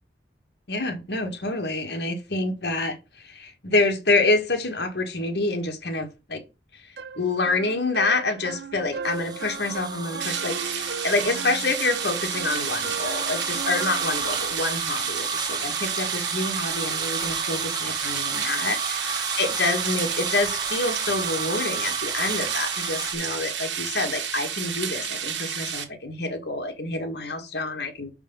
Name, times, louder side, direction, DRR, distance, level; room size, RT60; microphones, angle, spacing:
voice 1, 0.7-6.4 6.7-6.8 7.2-28.1, left 2 dB, 65° left, 1.8 m, -27 dB
sound 1, 7.0-14.6, right 4 dB, 60° right, 0.6 m, -37 dB
sound 2, 9.0-23.1, right 5 dB, 25° right, 0.8 m, -32 dB
sound 3, 10.2-25.9, right 8 dB, 80° right, 1.4 m, -31 dB
5.8 x 4.6 x 5.5 m
head